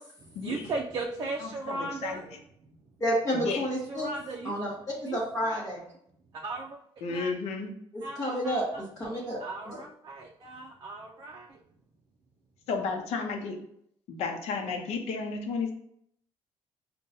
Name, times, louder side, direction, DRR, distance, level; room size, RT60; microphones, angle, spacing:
voice 1, 0.4-2.2 3.9-4.5 5.1-5.2 6.3-6.8 7.1-7.3 8.0-8.2 8.4-8.8 9.4-11.6, right 3 dB, 40° right, 0 dB, 0.4 m, -36 dB
voice 2, 1.4-2.4 3.4-3.6 7.0-7.7 12.7-13.6 14.1-15.7, left 4 dB, 80° left, 4 dB, 0.7 m, -33 dB
voice 3, 3.0-4.1 4.4-4.7 5.1-5.8 7.9-9.9, equal, 30° left, -6 dB, 1.0 m, -30 dB
5.3 x 2.2 x 2.6 m, 0.70 s
cardioid pair, 120°, 11 cm